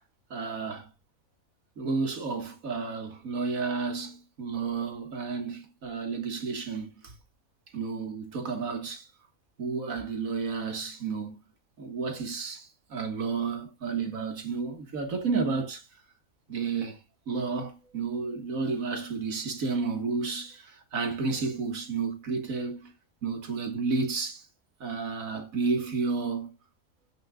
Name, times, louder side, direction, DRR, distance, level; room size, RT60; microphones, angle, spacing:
voice 1, 0.3-0.9 1.8-7.1 7.7-9.1 9.6-11.4 11.8-15.9 16.5-17.0 17.3-22.9 23.2-24.5 24.8-26.5, right 4 dB, 85° right, 2.2 m, -31 dB
16.0 x 6.4 x 2.3 m
omnidirectional pair, 1.4 m